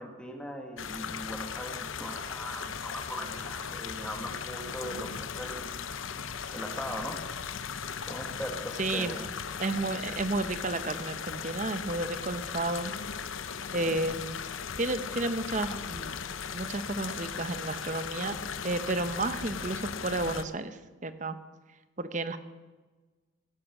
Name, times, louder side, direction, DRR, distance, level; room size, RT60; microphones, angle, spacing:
voice 1, 0.0-5.8 6.5-7.2 8.1-9.3, equal, 5° left, 1 dB, 1.6 m, -39 dB
sound 1, 0.8-20.4, left 6 dB, 85° left, 0.7 m, -38 dB
voice 2, 8.8-9.2 9.6-12.9 13.7-14.4 14.8-16.2 16.5-18.4 18.6-21.4 22.0-22.4, right 2 dB, 40° right, 11 dB, 0.9 m, -32 dB
17.0 x 10.5 x 6.1 m, 1.3 s
head